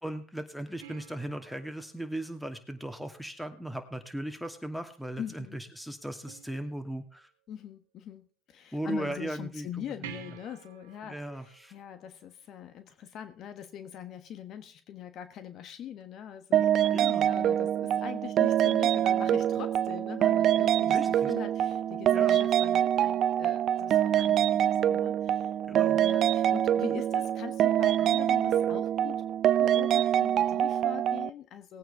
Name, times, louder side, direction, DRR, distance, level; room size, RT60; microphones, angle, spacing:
voice 1, 0.0-7.3 8.7-10.1 11.0-11.7 16.9-17.3 20.9-21.3 22.1-22.4 25.7-26.0, right 1 dB, ahead, 8 dB, 2.5 m, -37 dB
sound 1, 0.8-3.4 6.3-7.2 10.0-13.0 16.0-16.1, right 11 dB, 85° right, 1.3 m, -51 dB
voice 2, 5.2-5.6 7.5-29.2 29.6-31.8, left 9 dB, 55° left, 11 dB, 1.2 m, -43 dB
sound 2, 16.5-31.3, right 11 dB, 50° right, 0.5 m, -25 dB
19.5 x 9.0 x 3.6 m, 0.39 s
supercardioid pair, 85°, 0 cm